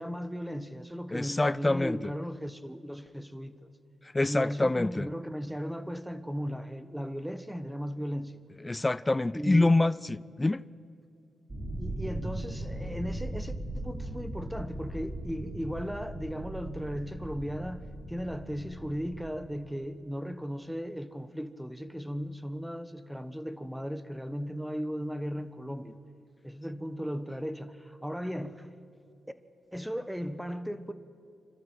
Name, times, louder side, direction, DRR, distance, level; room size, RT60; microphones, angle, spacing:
voice 1, 0.0-3.7 4.3-8.4 9.3-9.7 11.8-26.0 26.4-28.7 29.7-30.9, equal, 5° right, 1.3 m, -36 dB
voice 2, 1.1-2.0 4.1-5.1 8.6-10.6, left 2 dB, 20° left, 0.4 m, -26 dB
sound 1, 11.5-19.3, right 1 dB, 30° right, 6.1 m, -38 dB
28.0 x 12.5 x 7.9 m
cardioid pair, 60°, 0 cm